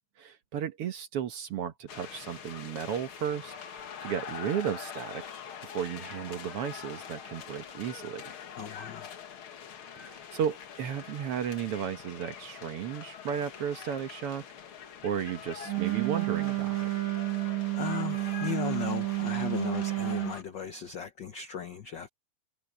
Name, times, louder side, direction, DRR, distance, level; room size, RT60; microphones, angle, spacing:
voice 1, 0.2-5.2 5.6-8.4 9.9-14.4 15.0-16.9, right 8 dB, 60° right, 1.8 m, -34 dB
sound 1, 1.9-20.4, left 8 dB, 55° left, 1.9 m, -44 dB
voice 2, 8.5-9.2 17.7-22.1, left 8 dB, 70° left, 1.1 m, -37 dB
Wind instrument woodwind instrument, 15.6-20.4, right 22 dB, 80° right, 2.4 m, -30 dB
omnidirectional pair, 3.3 m